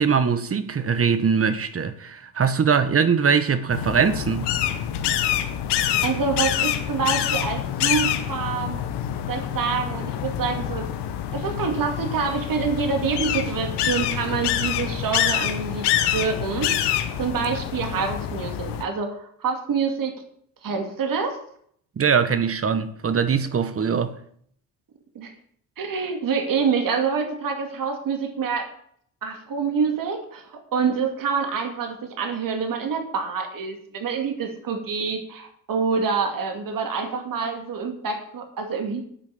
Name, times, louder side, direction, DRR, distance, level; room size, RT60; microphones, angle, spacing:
voice 1, 0.0-4.5 22.0-24.2, right 6 dB, 35° right, 1.2 m, -22 dB
sound 1, 3.7-18.8, left 10 dB, 80° left, 1.3 m, -26 dB
voice 2, 6.0-8.8 9.3-10.9 11.3-15.9 16.1-20.1 20.6-21.4 25.1-25.3 25.8-28.7 29.2-39.0, right 5 dB, 55° right, 2.5 m, -26 dB
10.0 x 5.9 x 8.3 m
supercardioid pair, 75°, 40 cm